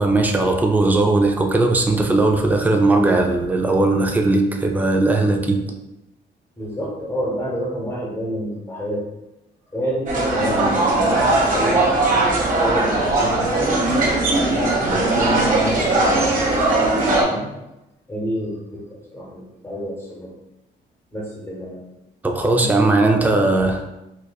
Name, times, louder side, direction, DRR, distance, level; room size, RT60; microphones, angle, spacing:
voice 1, 0.0-5.6 22.2-23.8, right 2 dB, 10° right, 3 dB, 0.4 m, -18 dB
voice 2, 6.6-9.0 9.7-13.8 14.4-16.7 17.3-17.5 18.1-20.3 21.1-21.8 22.6-23.3, equal, 15° left, -6 dB, 1.0 m, -29 dB
sound 1, 10.1-17.2, right 2 dB, 40° right, 1.1 m, -19 dB
4.6 x 2.4 x 2.3 m, 0.93 s
cardioid pair, 90°, 20 cm